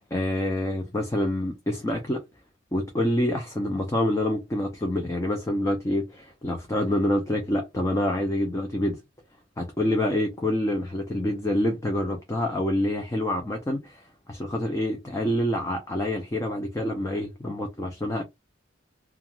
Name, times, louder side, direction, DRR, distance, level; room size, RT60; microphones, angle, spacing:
voice 1, 0.0-2.2 2.7-9.0 9.6-18.2, left 1 dB, 15° left, 0.4 m, -27 dB
2.4 x 2.3 x 2.9 m
head